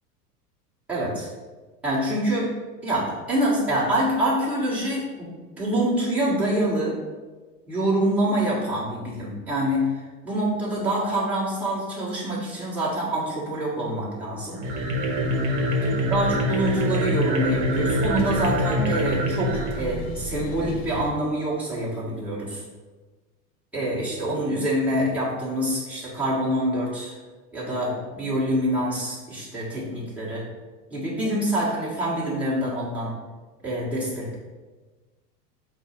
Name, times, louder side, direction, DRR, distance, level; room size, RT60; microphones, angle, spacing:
voice 1, 0.9-1.3 1.8-2.5 2.8-5.3 5.6-7.0 7.7-14.6 15.8-22.6 23.7-27.2 27.5-30.4 30.9-33.1 33.6-34.4, right 1 dB, 5° right, -8 dB, 1.2 m, -26 dB
sound 1, 14.5-20.8, equal, 55° right, 0.9 m, -25 dB
sound 2, 14.6-21.1, left 4 dB, 60° left, 0.8 m, -36 dB
4.3 x 2.0 x 4.4 m, 1.3 s
hypercardioid pair, 95°, 47 cm